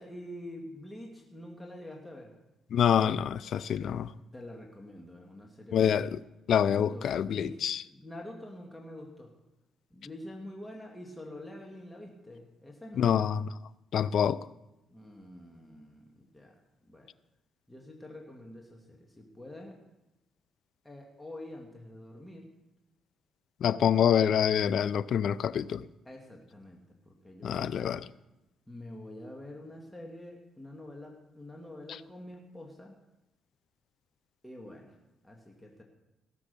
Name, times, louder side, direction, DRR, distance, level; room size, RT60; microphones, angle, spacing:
voice 1, 0.0-2.4 3.8-4.0 4.3-6.2 6.7-7.6 7.9-9.3 9.9-13.2 14.9-16.6 16.8-17.1 17.7-19.8 20.8-22.5 26.1-26.8 27.1-28.0 28.7-32.9 34.4-35.0 35.2-35.8, left 1 dB, 10° left, 2.0 m, -46 dB
voice 2, 2.7-4.1 5.7-6.2 6.5-7.8 13.0-13.5 13.9-14.4 23.6-25.8 27.4-28.0, left 9 dB, 65° left, 0.4 m, -26 dB
17.0 x 7.1 x 6.8 m
cardioid pair, 90°, 0 cm